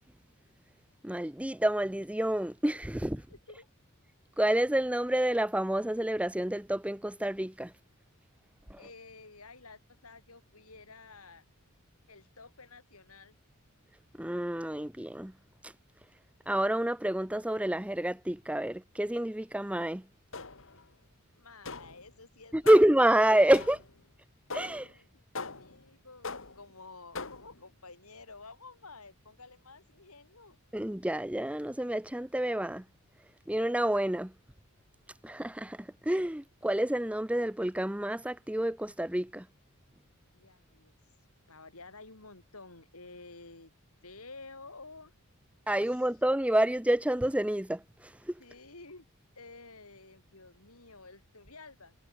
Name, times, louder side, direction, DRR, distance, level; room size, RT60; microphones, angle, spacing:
voice 1, 1.0-3.2 4.4-7.7 8.7-8.8 14.2-15.3 15.6-15.7 16.5-20.0 22.5-23.8 24.5-24.9 30.7-32.8 33.5-34.3 35.2-39.5 45.7-48.3, right 1 dB, 5° right, 0.9 m, -28 dB
voice 2, 3.3-3.7 8.8-11.5 12.1-13.4 21.3-22.8 24.7-30.6 40.3-40.9 41.5-43.7 44.0-45.1 45.9-46.1 48.4-49.1 49.3-52.0, left 3 dB, 80° left, 6.0 m, -51 dB
sound 1, 20.3-20.8 21.7-22.1 22.7-23.1 23.5-24.0 24.5-24.9 25.4-25.8 26.2-26.7 27.2-27.6, left 4 dB, 65° left, 4.4 m, -41 dB
head